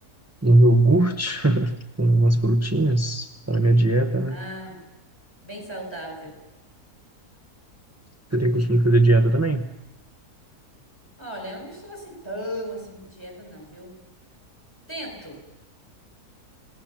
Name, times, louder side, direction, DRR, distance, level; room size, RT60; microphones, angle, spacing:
voice 1, 0.4-4.4 8.3-9.6, right 1 dB, 15° right, 5 dB, 0.6 m, -19 dB
voice 2, 4.3-4.8 5.4-6.4 11.2-13.9 14.9-15.4, equal, 15° left, 2 dB, 7.9 m, -36 dB
28.0 x 19.0 x 7.4 m, 0.96 s
omnidirectional pair, 1.6 m